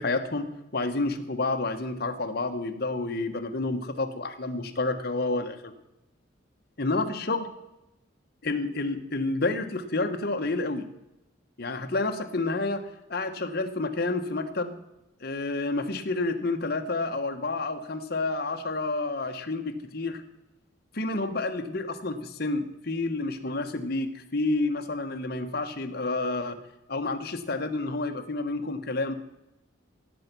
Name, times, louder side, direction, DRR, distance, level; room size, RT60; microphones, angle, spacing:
voice 1, 0.0-5.7 6.8-7.5 8.4-10.8 11.6-12.8 13.1-14.7 15.2-20.2 20.9-26.6 26.9-29.1, left 2 dB, 55° left, 6 dB, 1.3 m, -29 dB
17.0 x 8.1 x 6.1 m, 0.92 s
head